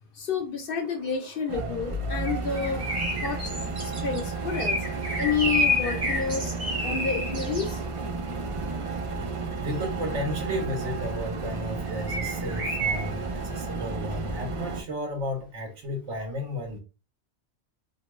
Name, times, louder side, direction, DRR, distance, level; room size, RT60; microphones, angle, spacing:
voice 1, 0.1-2.8 3.2-3.4 3.8-4.8 5.2-6.5 6.8-7.8, left 6 dB, 60° left, 0.7 m, -29 dB
sound 1, 0.7-13.1, left 1 dB, 45° right, 0.8 m, -32 dB
sound 2, 1.5-14.8, right 3 dB, 60° right, 0.3 m, -32 dB
voice 2, 9.6-16.8, equal, 90° right, 1.2 m, -33 dB
2.8 x 2.2 x 3.1 m
omnidirectional pair, 1.2 m